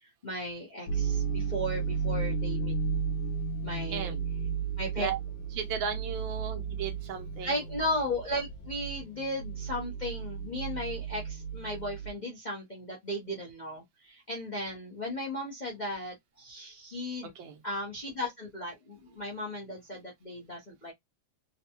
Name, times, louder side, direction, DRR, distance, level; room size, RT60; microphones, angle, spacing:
voice 1, 0.2-2.7 3.6-4.1 4.8-5.1 7.4-17.3 17.6-20.9, left 1 dB, 35° left, 0.7 m, -36 dB
sound 1, 0.9-12.1, right 5 dB, 80° left, 1.5 m, -34 dB
voice 2, 3.9-4.2 5.0-5.2 5.6-7.6 17.2-17.6, right 7 dB, 80° right, 1.5 m, -35 dB
4.0 x 2.2 x 2.8 m
omnidirectional pair, 2.1 m